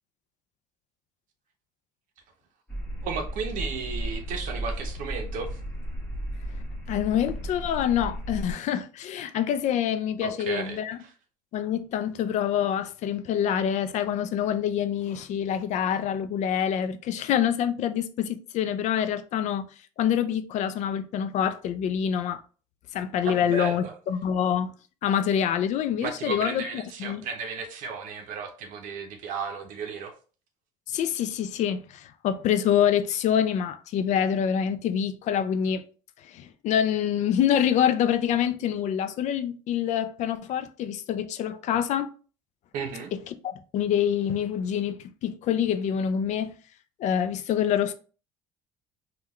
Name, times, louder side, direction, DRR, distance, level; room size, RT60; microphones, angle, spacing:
sound 1, 2.7-8.5, right 1 dB, 10° left, 1.3 m, -34 dB
voice 1, 3.0-5.6 10.2-11.1 23.2-23.9 26.0-30.1 42.7-43.1, right 5 dB, 65° right, 0.6 m, -34 dB
voice 2, 6.9-11.0 11.5-19.7 20.0-22.4 22.9-24.7 25.0-27.2 30.9-35.8 36.2-42.1 43.1-46.5 47.0-47.9, left 9 dB, 55° left, 0.4 m, -26 dB
3.6 x 2.2 x 3.0 m
supercardioid pair, 100°, 15 cm